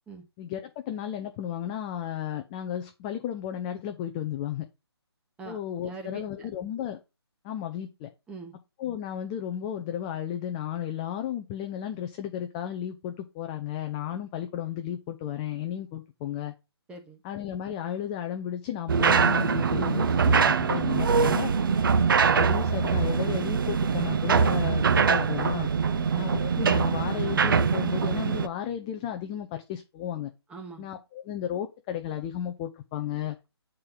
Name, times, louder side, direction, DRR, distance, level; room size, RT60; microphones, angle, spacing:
voice 1, 0.4-4.6 5.5-7.0 7.4-8.1 8.8-16.5 17.2-21.5 22.1-25.7 26.1-30.3 30.8-33.4, left 10 dB, 10° left, 6 dB, 0.3 m, -33 dB
voice 2, 5.4-6.5 8.3-8.6 16.9-17.2 21.6-21.8 30.5-30.9, right 4 dB, 5° right, 3 dB, 0.9 m, -43 dB
sound 1, 18.9-28.5, right 6 dB, 50° right, 0.6 m, -23 dB
8.7 x 4.4 x 3.8 m, 0.26 s
figure-of-eight pair, 145°, 14 cm